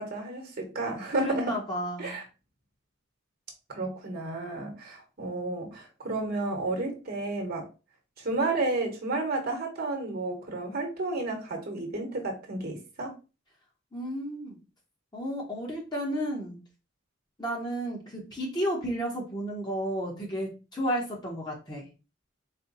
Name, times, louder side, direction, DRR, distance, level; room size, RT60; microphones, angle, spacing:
voice 1, 0.0-1.6 2.0-2.2 3.7-7.7 8.2-13.1, right 2 dB, 50° right, 1.1 m, -32 dB
voice 2, 1.1-2.2 13.9-14.6 15.1-16.6 17.4-21.9, equal, 20° left, 1.0 m, -32 dB
4.2 x 2.2 x 4.0 m
head